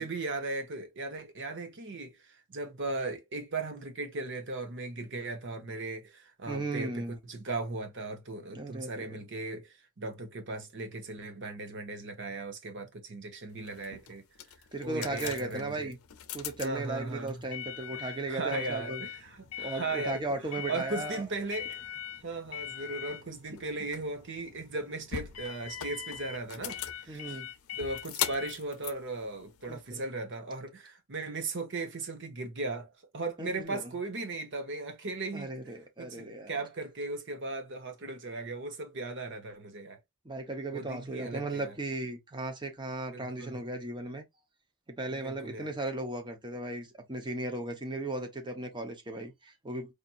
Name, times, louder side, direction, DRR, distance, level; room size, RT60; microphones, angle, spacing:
voice 1, 0.0-14.2 14.8-15.9 16.6-17.4 18.0-20.2 20.7-22.0 22.2-27.4 27.7-35.7 36.0-40.0 40.7-41.7 43.1-43.6 45.1-45.7, right 3 dB, 55° right, 1.0 m, -37 dB
voice 2, 6.5-7.1 8.5-9.2 14.7-16.0 16.3-19.0 19.6-21.2 27.1-27.5 29.7-30.0 33.4-33.9 35.3-36.5 40.2-44.2 44.9-49.9, right 2 dB, 20° right, 1.0 m, -36 dB
sound 1, 13.6-30.0, left 10 dB, 85° left, 0.6 m, -41 dB
5.0 x 2.8 x 2.5 m
head